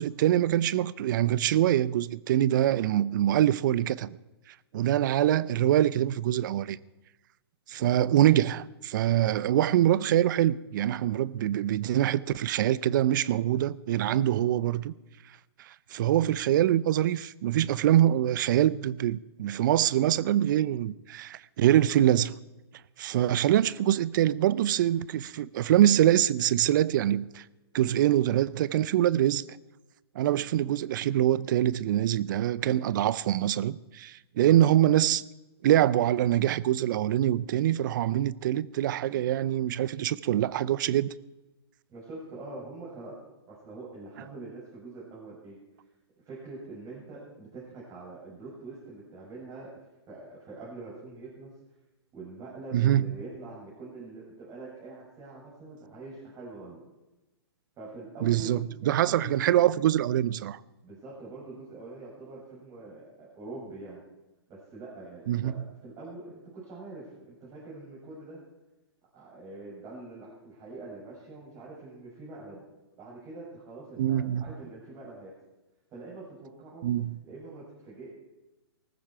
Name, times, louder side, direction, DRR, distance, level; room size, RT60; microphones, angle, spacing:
voice 1, 0.0-4.2 4.7-6.8 7.7-14.9 15.9-22.4 23.0-27.4 27.7-29.4 30.2-35.2 35.6-41.1 52.7-53.0 58.2-60.6 65.3-65.5 74.0-74.5 76.8-77.2, right 12 dB, 50° right, 0.7 m, -24 dB
voice 2, 41.9-43.2 43.5-45.6 46.2-51.5 52.1-56.8 57.8-59.4 60.8-64.0 64.5-68.4 69.1-72.6 73.0-75.3 75.9-76.9 77.2-78.1, right 3 dB, 25° right, 7.3 m, -44 dB
19.0 x 14.5 x 4.8 m
hypercardioid pair, 130°, 14 cm